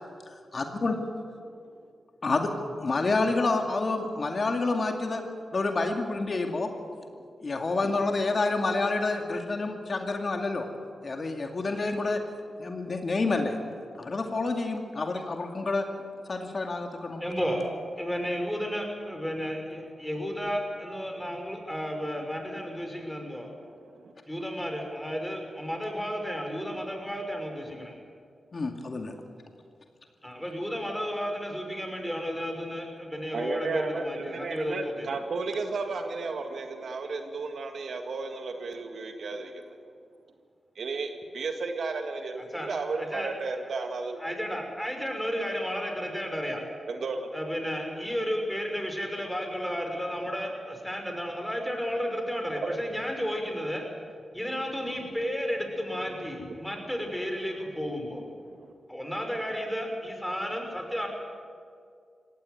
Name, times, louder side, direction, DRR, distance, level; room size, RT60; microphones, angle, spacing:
voice 1, 0.3-1.1 2.2-2.5 2.8-5.2 5.5-6.7 7.4-10.7 11.0-12.2 12.6-13.6 14.0-15.9 16.3-17.2 28.5-29.1, left 3 dB, 50° left, 4 dB, 2.2 m, -28 dB
voice 2, 17.2-17.7 18.0-23.5 24.3-27.9 30.2-35.1 42.5-42.7 43.0-43.3 44.2-46.6 47.3-53.8 54.3-58.3 58.9-61.1, equal, 5° left, 3 dB, 5.6 m, -32 dB
voice 3, 23.5-24.1 33.3-39.8 40.8-44.4 46.9-47.3 52.6-52.8 58.4-58.7, right 4 dB, 70° right, 5 dB, 1.9 m, -34 dB
18.5 x 16.0 x 9.3 m, 2.2 s
cardioid pair, 50°, 0 cm